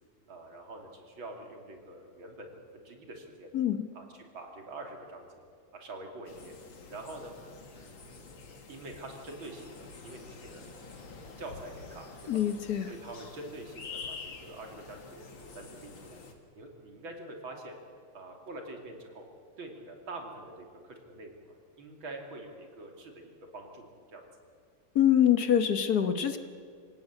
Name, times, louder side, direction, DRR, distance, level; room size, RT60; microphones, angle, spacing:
voice 1, 0.3-3.5 3.9-5.4 5.7-6.6 6.9-7.3 7.7-8.4 8.7-10.6 11.4-12.1 12.9-16.2 16.5-17.8 18.1-19.3 19.6-24.2, right 2 dB, 85° right, 2 dB, 3.7 m, -45 dB
voice 2, 3.5-3.8 12.3-12.9 24.9-26.4, left 9 dB, 55° left, 9 dB, 1.5 m, -25 dB
sound 1, 6.3-16.3, left 4 dB, 75° left, 2.8 m, -47 dB
27.0 x 17.0 x 8.4 m, 2.2 s
omnidirectional pair, 2.1 m